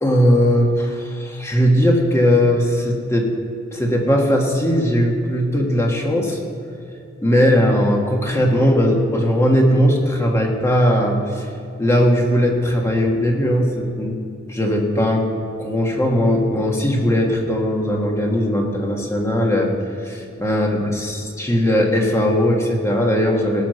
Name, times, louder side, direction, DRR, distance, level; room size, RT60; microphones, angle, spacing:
voice 1, 0.0-3.3 3.7-6.4 7.2-11.5 11.8-14.2 14.5-15.2 15.6-19.7 20.0-23.6, equal, 15° left, 0 dB, 1.5 m, -18 dB
18.0 x 6.1 x 6.5 m, 2.6 s
head